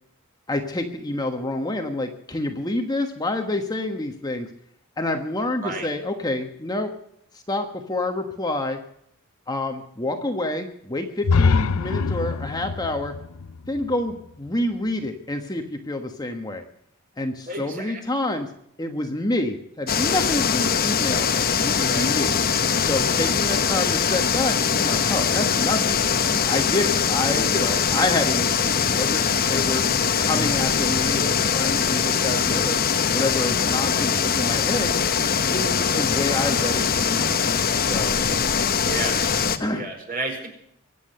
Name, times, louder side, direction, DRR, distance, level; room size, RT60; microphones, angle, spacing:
voice 1, 0.5-4.5 5.0-6.9 7.5-8.8 9.5-13.1 13.7-16.6 17.2-18.5 18.8-21.3 21.6-22.4 22.8-26.0 26.4-29.8 30.2-32.8 33.1-35.0 35.5-37.4 37.9-38.2 39.6-39.9, left 2 dB, 20° left, 4 dB, 1.3 m, -28 dB
sound 1, 11.2-15.1, left 4 dB, 70° left, 0.6 m, -24 dB
voice 2, 17.5-18.0 21.8-22.1 38.7-39.2 39.7-40.5, right 3 dB, 40° right, 2 dB, 4.8 m, -32 dB
sound 2, 19.9-39.6, left 6 dB, 40° left, 1.1 m, -22 dB
24.0 x 8.5 x 6.7 m, 0.73 s
head